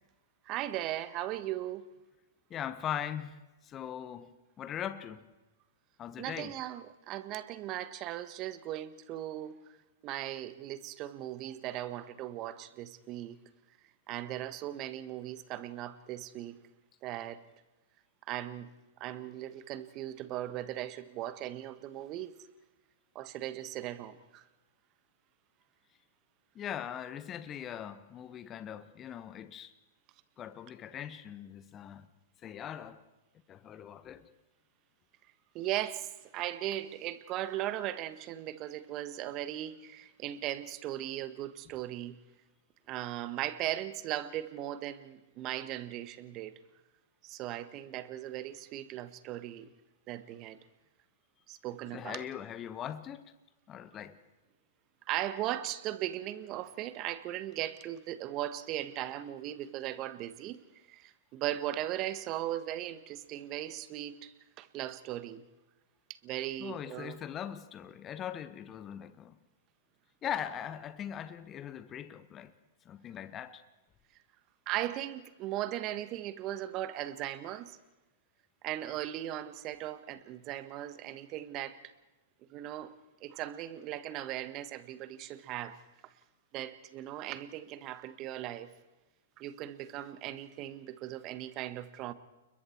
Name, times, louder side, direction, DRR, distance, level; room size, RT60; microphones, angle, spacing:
voice 1, 0.4-1.8 6.2-9.6 10.0-13.4 14.1-16.6 17.0-17.4 18.3-18.7 19.0-22.3 23.1-24.4 35.5-42.2 42.9-46.6 47.2-49.7 50.1-50.6 51.5-52.2 55.1-65.4 66.1-67.2 74.7-77.8 78.6-81.8 82.5-82.9 83.2-86.1 86.5-88.7 89.4-92.1, right 13 dB, 35° right, 1.5 m, -38 dB
voice 2, 2.5-3.4 3.6-5.3 6.0-6.5 26.5-29.7 30.4-32.1 32.4-33.0 33.5-34.3 51.9-53.2 53.7-54.2 66.6-69.4 70.2-72.5 72.8-73.6, left 9 dB, 25° left, 1.3 m, -40 dB
29.5 x 22.0 x 4.6 m
hypercardioid pair, 115°, 0 cm